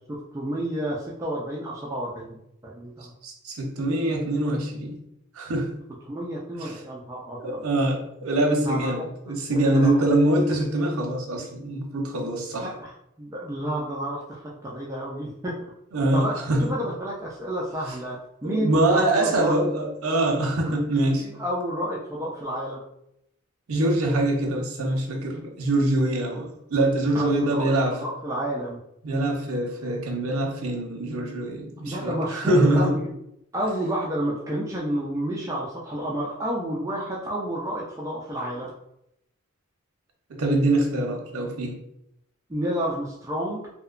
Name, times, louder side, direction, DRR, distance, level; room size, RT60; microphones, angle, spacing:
voice 1, 0.1-2.4 2.6-3.1 6.0-7.6 8.6-9.0 9.5-9.9 12.6-15.6 16.1-19.7 20.6-20.7 21.1-22.8 27.1-28.8 31.8-33.1 33.5-38.7 42.5-43.6, right 1 dB, 15° right, -4 dB, 0.3 m, -30 dB
voice 2, 3.2-5.0 5.4-5.7 6.6-6.8 7.4-12.7 15.9-16.7 18.4-21.3 23.7-27.9 29.0-32.9 40.3-41.8, right 1 dB, 80° right, 2 dB, 0.6 m, -24 dB
2.8 x 2.1 x 2.4 m, 0.80 s
head